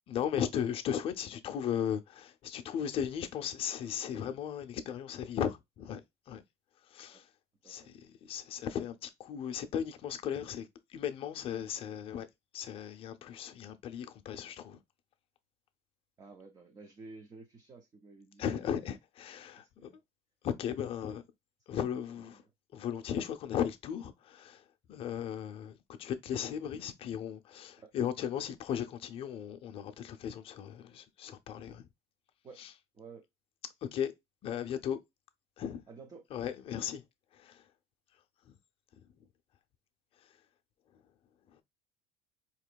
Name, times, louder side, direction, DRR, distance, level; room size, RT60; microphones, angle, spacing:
voice 1, 0.1-6.4 6.9-7.3 7.7-12.3 12.5-14.8 18.4-19.9 20.4-21.2 21.7-22.4 22.7-24.6 24.9-31.9 32.6-32.7 33.8-34.1 34.4-35.0 35.6-35.8 36.3-37.0 37.3-37.6 38.5-38.6, left 9 dB, 40° left, 0.6 m, -36 dB
voice 2, 16.2-18.6 19.6-20.0 21.7-21.8 22.3-22.5 27.8-27.9 32.4-32.6 32.9-33.2 35.9-36.3, right 4 dB, 25° right, 0.7 m, -52 dB
4.2 x 3.0 x 2.2 m
cardioid pair, 135°, 14 cm